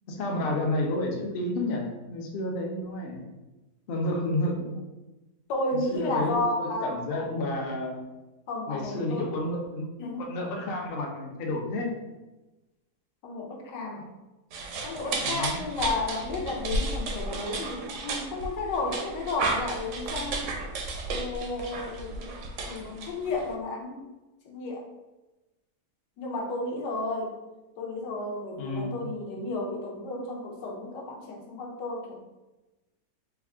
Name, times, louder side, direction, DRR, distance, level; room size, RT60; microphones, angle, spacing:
voice 1, 0.1-3.3 3.9-4.8 5.9-8.0 8.7-9.9 10.2-11.9 15.2-15.6 28.6-29.1, left 1 dB, 65° left, 0 dB, 0.5 m, -30 dB
voice 2, 5.5-7.3 8.5-9.4 10.0-10.2 13.2-14.1 14.8-20.5 21.0-22.4 22.6-23.9 24.4-24.9 26.2-27.4 27.8-32.2, left 2 dB, 90° left, 0 dB, 1.3 m, -32 dB
sound 1, 14.5-23.5, right 3 dB, 70° right, 0.7 m, -33 dB
3.4 x 2.3 x 3.6 m, 1.1 s
omnidirectional pair, 1.8 m